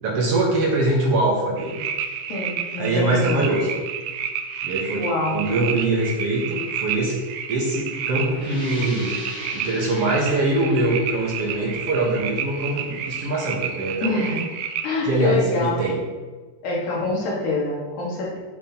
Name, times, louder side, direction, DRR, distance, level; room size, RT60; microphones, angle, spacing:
voice 1, 0.0-1.8 2.8-3.7 4.6-5.1 5.3-7.2 7.5-9.1 9.5-14.2 15.0-16.0, right 2 dB, 60° right, -2 dB, 1.8 m, -23 dB
sound 1, 1.6-14.9, right 8 dB, 90° right, 2.1 m, -31 dB
voice 2, 2.3-3.5 5.0-5.4 14.0-14.4 14.8-15.8 16.6-18.4, left 3 dB, 75° left, -3 dB, 3.0 m, -25 dB
sound 2, 8.3-13.8, left 1 dB, 50° left, 2.8 m, -40 dB
8.1 x 7.7 x 2.8 m, 1.3 s
omnidirectional pair, 3.5 m